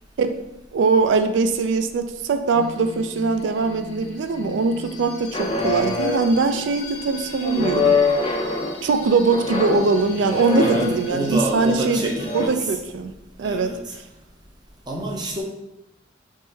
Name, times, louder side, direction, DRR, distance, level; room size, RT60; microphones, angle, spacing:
voice 1, 0.7-8.0 8.8-13.1 13.4-13.7, right 4 dB, 75° right, 8 dB, 0.3 m, -21 dB
sound 1, 2.5-12.5, left 2 dB, 90° left, 0.8 m, -39 dB
sound 2, 5.3-6.5 7.4-8.8 9.3-11.3 12.1-12.5, left 3 dB, 25° left, 0.3 m, -24 dB
voice 2, 10.6-12.8 13.4-13.9 14.9-15.4, right 2 dB, 20° right, -1 dB, 0.5 m, -27 dB
3.7 x 3.0 x 2.7 m, 0.94 s
head